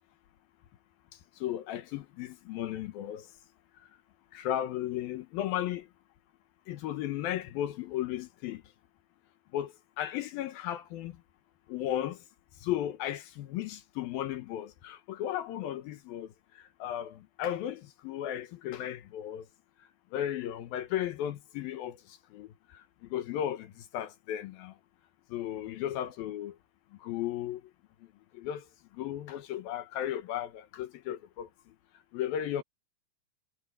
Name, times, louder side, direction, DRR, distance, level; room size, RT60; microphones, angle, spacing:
voice 1, 1.4-3.3 4.3-5.9 6.7-8.6 9.5-11.1 11.7-12.2 12.6-19.5 20.1-22.8 23.1-24.7 25.3-26.6 27.0-27.6 28.3-28.7 28.9-31.5 32.1-32.6, left 11 dB, 70° left, 2.4 m, -35 dB
omnidirectional pair, 5.2 m